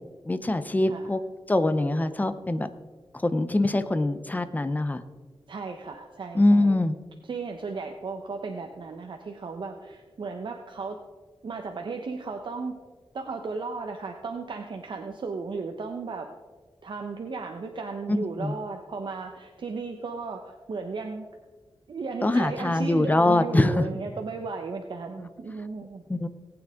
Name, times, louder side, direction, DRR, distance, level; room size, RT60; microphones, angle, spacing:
voice 1, 0.3-1.2 1.5-2.7 3.2-5.0 6.3-7.0 18.1-18.5 22.2-23.9 26.1-26.3, left 2 dB, 20° left, 11 dB, 0.7 m, -23 dB
voice 2, 5.5-6.8 7.2-11.0 11.4-12.7 13.1-16.3 16.8-21.3 21.9-26.0, right 4 dB, 60° right, 4 dB, 0.9 m, -35 dB
18.5 x 8.9 x 3.6 m, 1.3 s
wide cardioid pair, 135°, 9 cm